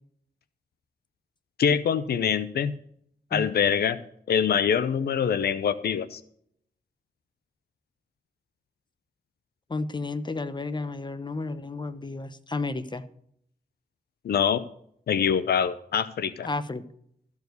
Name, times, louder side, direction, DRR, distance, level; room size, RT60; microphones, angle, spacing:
voice 1, 1.6-2.7 3.3-4.0 4.3-6.2 14.2-14.6 15.1-16.5, left 7 dB, 85° left, 14 dB, 0.5 m, -24 dB
voice 2, 9.7-13.0 16.4-16.8, left 3 dB, 30° left, 13 dB, 0.9 m, -32 dB
14.0 x 4.8 x 7.9 m, 0.69 s
cardioid pair, 55°, 16 cm